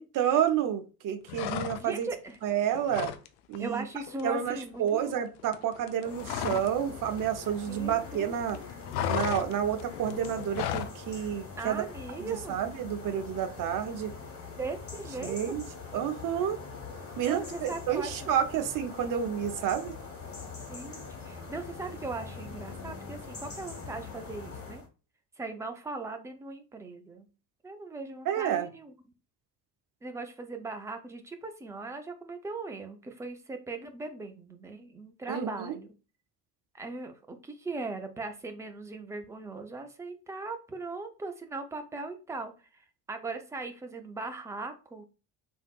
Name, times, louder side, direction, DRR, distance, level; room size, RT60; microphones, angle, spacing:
voice 1, 0.0-2.1 2.4-3.1 3.5-3.8 4.2-8.6 9.1-11.8 12.2-14.1 15.2-15.6 15.9-16.6 17.2-20.0 28.3-28.7 35.3-35.8, right 9 dB, 40° right, 7 dB, 0.7 m, -30 dB
sound 1, 1.3-2.1 2.4-3.3 3.5-3.8 4.0-6.8 7.1-8.2 8.4-11.0, left 10 dB, 55° left, 0.5 m, -35 dB
voice 2, 1.8-2.4 3.6-5.1 7.7-8.6 11.6-12.6 14.6-15.6 17.3-18.2 20.7-24.8 25.4-27.3 27.6-28.9 30.0-35.9 36.7-45.0, right 3 dB, 5° right, 6 dB, 0.3 m, -39 dB
sound 2, 6.0-24.9, left 4 dB, 25° left, 1.5 m, -43 dB
3.4 x 2.6 x 2.3 m, 0.33 s
figure-of-eight pair, 50°, 49 cm